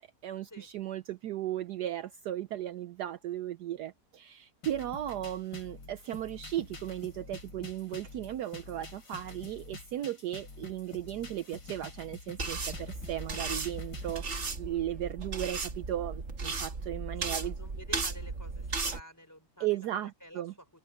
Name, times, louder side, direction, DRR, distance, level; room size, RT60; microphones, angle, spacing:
voice 1, 0.0-17.6 19.6-20.5, right 12 dB, 70° right, 1.1 m, -36 dB
sound 1, 4.6-14.2, left 3 dB, 75° left, 4.3 m, -47 dB
sound 2, 12.4-19.0, right 4 dB, 40° right, 1.9 m, -36 dB
voice 2, 17.2-19.7 20.0-20.4, equal, 10° left, 3.9 m, -50 dB
omnidirectional pair, 2.0 m